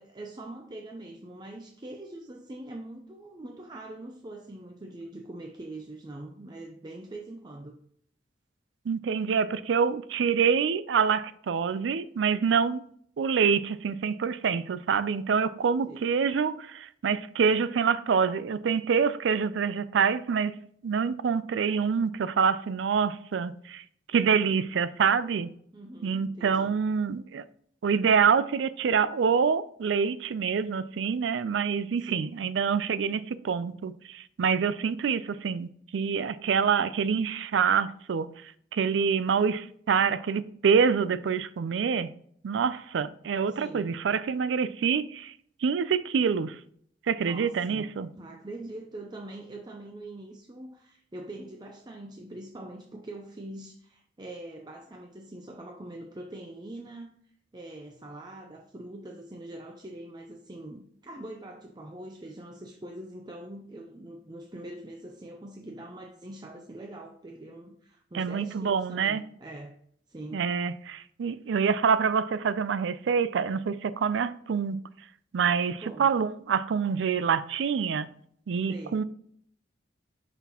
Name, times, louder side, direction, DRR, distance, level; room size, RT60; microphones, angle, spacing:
voice 1, 0.0-7.8 15.7-16.0 25.7-26.8 32.0-32.4 43.5-43.9 47.2-57.2 57.5-69.8 70.1-70.5 75.8-76.2 78.7-79.0, right 1 dB, 25° right, 0.5 m, -43 dB
voice 2, 8.9-12.8 13.2-20.5 20.8-23.8 24.1-25.5 26.0-27.4 27.8-38.3 38.7-42.1 42.4-45.3 45.6-46.6 47.1-48.1 68.1-69.2 70.3-74.8 75.3-78.1 78.5-79.0, right 6 dB, 85° right, 0.4 m, -26 dB
5.8 x 5.8 x 2.9 m
head